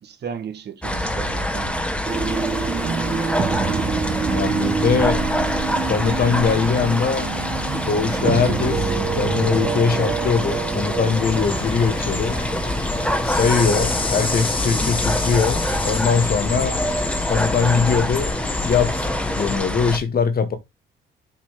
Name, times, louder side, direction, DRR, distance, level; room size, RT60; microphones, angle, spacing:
voice 1, 0.0-2.5, right 7 dB, 60° right, 1.7 m, -36 dB
sound 1, 0.8-20.0, left 1 dB, 5° left, 1.3 m, -26 dB
sound 2, 2.1-16.1, right 6 dB, 40° right, 1.4 m, -28 dB
voice 2, 4.3-5.2 5.8-7.3 7.9-12.4 13.2-16.8 17.2-18.3 18.6-20.6, left 5 dB, 50° left, 1.8 m, -21 dB
sound 3, 11.2-19.6, left 3 dB, 25° left, 1.9 m, -27 dB
7.2 x 3.8 x 4.9 m
cardioid pair, 90°, 20 cm